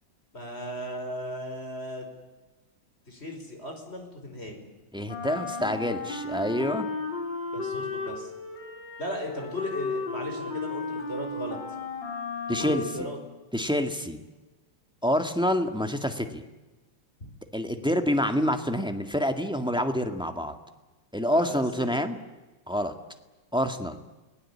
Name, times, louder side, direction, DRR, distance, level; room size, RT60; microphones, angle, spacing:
voice 1, 0.3-2.1 3.1-4.6 7.5-8.3 9.0-11.6 12.6-13.2 17.2-17.3 21.3-21.6 21.9-22.0, left 1 dB, 30° left, 4 dB, 5.5 m, -36 dB
voice 2, 4.9-6.9 12.5-12.8 13.5-14.2 15.0-16.4 17.5-20.5 21.1-22.2 22.7-22.9 23.5-24.0, equal, 5° right, 6 dB, 1.7 m, -27 dB
Wind instrument woodwind instrument, 5.0-13.2, left 4 dB, 65° left, 4.8 m, -34 dB
30.0 x 20.0 x 8.7 m, 1.2 s
omnidirectional pair, 2.1 m